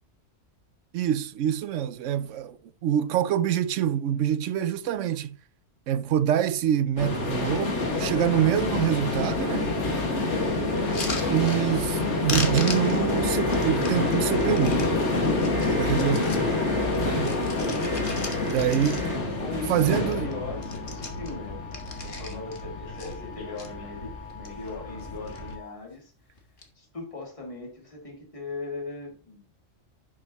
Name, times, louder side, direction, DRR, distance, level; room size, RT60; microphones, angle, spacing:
voice 1, 0.9-5.3 5.9-9.8 11.3-14.8 15.8-16.3 17.0-17.3 18.4-19.0 19.7-20.3, right 10 dB, 80° right, 1.0 m, -26 dB
sound 1, 7.0-25.5, left 2 dB, 65° left, 2.2 m, -27 dB
sound 2, 10.8-12.0 12.3-14.9 15.3-16.5 16.9-19.4 19.7-19.8 20.0-20.3 20.6-22.6 23.0-23.7 24.2-24.7 25.0-25.5 26.4-26.7, left 3 dB, 45° left, 1.6 m, -37 dB
sound 3, 13.2-14.5 15.5-16.9 17.8-19.2 20.1-25.7, left 1 dB, 5° left, 3.3 m, -44 dB
voice 2, 15.6-16.2 18.0-19.0 19.3-26.4 26.7-29.5, left 3 dB, 25° left, 2.3 m, -39 dB
10.5 x 6.3 x 2.9 m
omnidirectional pair, 1.3 m